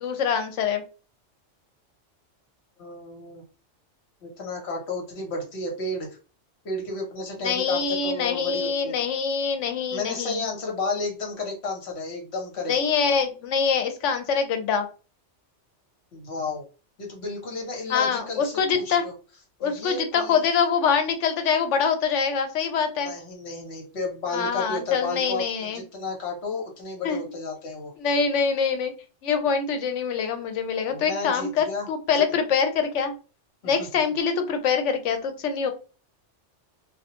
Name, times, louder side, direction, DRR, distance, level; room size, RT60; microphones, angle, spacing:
voice 1, 0.0-0.8 7.4-10.4 12.7-14.9 17.9-19.0 19.6-23.1 24.3-25.8 27.0-27.2 28.0-28.9 29.2-33.1 33.6-35.7, left 6 dB, 85° left, 7 dB, 0.9 m, -24 dB
voice 2, 2.8-3.4 4.2-6.2 6.6-9.0 9.9-12.7 16.1-16.6 17.0-19.1 19.6-20.4 23.0-27.9 30.9-31.9 32.1-32.2 33.6-33.9, left 3 dB, 65° left, 1 dB, 1.1 m, -32 dB
2.3 x 2.2 x 2.8 m, 0.35 s
omnidirectional pair, 1.2 m